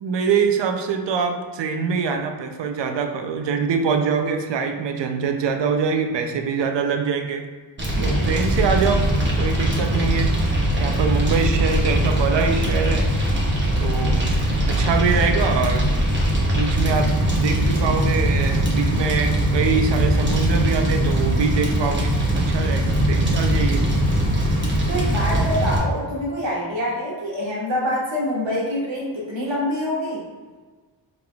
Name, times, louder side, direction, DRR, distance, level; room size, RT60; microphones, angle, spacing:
voice 1, 0.0-7.4 8.0-9.1 9.4-10.3 10.8-13.1 13.8-14.2 14.7-15.9 16.5-23.8, right 6 dB, 70° right, 5 dB, 0.6 m, -24 dB
Fire, 7.8-25.8, equal, 25° right, 0.9 m, -21 dB
voice 2, 7.9-8.3 24.9-30.2, equal, 90° right, -4 dB, 1.3 m, -26 dB
4.9 x 3.7 x 2.3 m, 1.4 s
wide cardioid pair, 110°, 44 cm